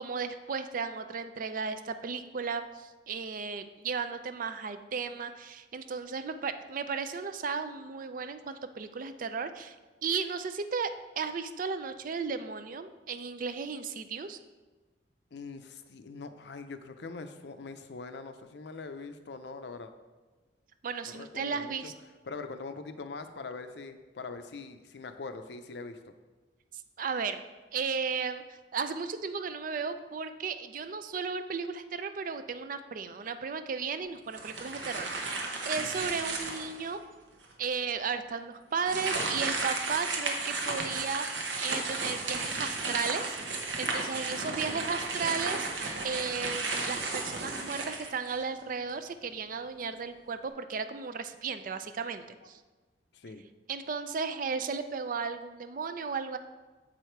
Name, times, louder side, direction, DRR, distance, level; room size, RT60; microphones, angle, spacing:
voice 1, 0.0-9.8 10.0-14.4 20.8-21.9 26.7-27.4 27.7-35.3 35.6-37.0 37.6-41.3 41.6-43.4 43.8-45.7 46.0-52.6 53.7-56.4, right 5 dB, 50° right, 10 dB, 0.4 m, -35 dB
voice 2, 15.3-19.9 21.1-21.9 22.2-26.0 35.7-36.2 44.4-44.9 53.1-53.4, left 4 dB, 65° left, 9 dB, 0.5 m, -43 dB
sound 1, 34.3-36.9 37.4-37.5 38.8-48.6, right 3 dB, 85° right, 1.0 m, -34 dB
7.4 x 4.9 x 4.5 m, 1.3 s
head